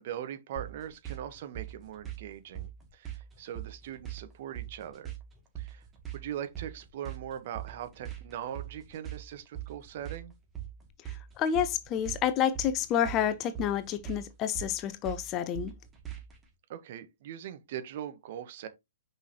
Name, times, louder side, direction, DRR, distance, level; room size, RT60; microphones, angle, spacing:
voice 1, 0.0-5.1 5.6-5.8 6.1-10.3 16.7-18.7, right 10 dB, 50° right, 1.2 m, -41 dB
sound 1, 0.6-16.4, right 11 dB, 15° right, 2.4 m, -42 dB
voice 2, 11.0-15.7, left 9 dB, 30° left, 0.7 m, -29 dB
6.1 x 5.5 x 2.9 m
figure-of-eight pair, 115°, 0 cm